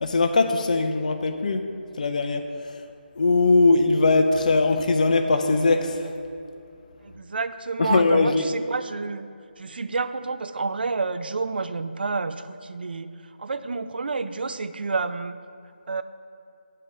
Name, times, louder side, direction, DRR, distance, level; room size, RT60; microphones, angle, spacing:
voice 1, 0.0-1.7 2.0-2.5 3.2-6.1 7.8-8.4, left 3 dB, 45° left, 5 dB, 0.4 m, -20 dB
voice 2, 7.0-9.3 9.6-13.1 13.4-15.4 15.9-16.0, right 4 dB, 65° right, 11 dB, 0.3 m, -29 dB
6.7 x 3.2 x 6.0 m, 2.5 s
figure-of-eight pair, 170°, 6 cm